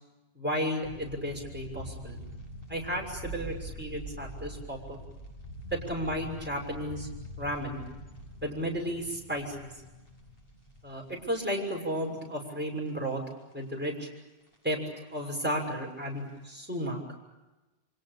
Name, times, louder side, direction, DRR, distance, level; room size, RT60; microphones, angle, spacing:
voice 1, 0.3-2.2 2.7-5.0 5.7-7.1 7.4-7.8 8.4-9.7 10.8-13.2 13.5-14.1 14.6-14.8 15.1-17.0, equal, 10° right, -1 dB, 6.3 m, -33 dB
sound 1, 0.8-12.3 12.7-12.8 13.3-14.1 14.4-14.6 14.9-16.2 16.5-16.8, equal, 60° left, 6.4 m, -44 dB
30.0 x 26.5 x 6.9 m, 1.1 s
omnidirectional pair, 1.1 m